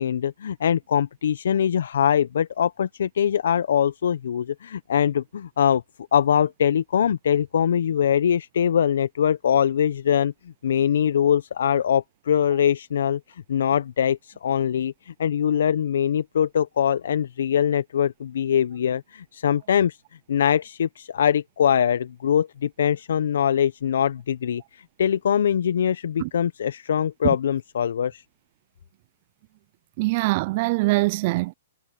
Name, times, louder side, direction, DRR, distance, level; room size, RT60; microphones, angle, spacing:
voice 1, 0.0-5.8 6.1-10.3 10.6-20.0 20.3-28.2, left 9 dB, 70° left, 1.1 m, -22 dB
voice 2, 30.0-31.5, right 22 dB, 45° right, 0.6 m, -23 dB
hypercardioid pair, 120°, 0 cm